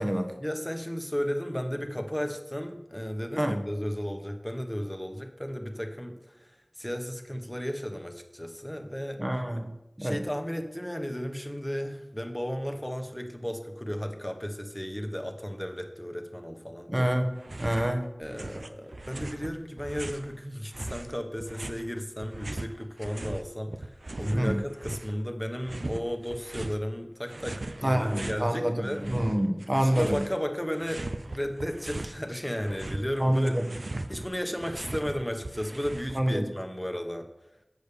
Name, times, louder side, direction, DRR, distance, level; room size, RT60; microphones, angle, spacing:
voice 1, 0.4-9.4 10.0-17.1 18.2-29.1 29.7-33.6 34.1-37.3, equal, 10° left, 4 dB, 1.1 m, -34 dB
voice 2, 9.2-9.7 10.0-10.2 16.9-17.3 17.6-18.0 24.3-24.5 27.8-30.2 33.2-33.7 36.1-36.4, right 1 dB, 25° right, 6 dB, 1.1 m, -26 dB
sound 1, 17.4-17.9 18.2-20.3 20.7-23.4 23.7-25.2 25.6-26.8 27.3-28.4 28.8-30.4 30.7-32.2 32.5-36.4, right 2 dB, 70° right, 0.5 m, -39 dB
8.1 x 5.1 x 6.8 m, 0.94 s
wide cardioid pair, 50°, 0 cm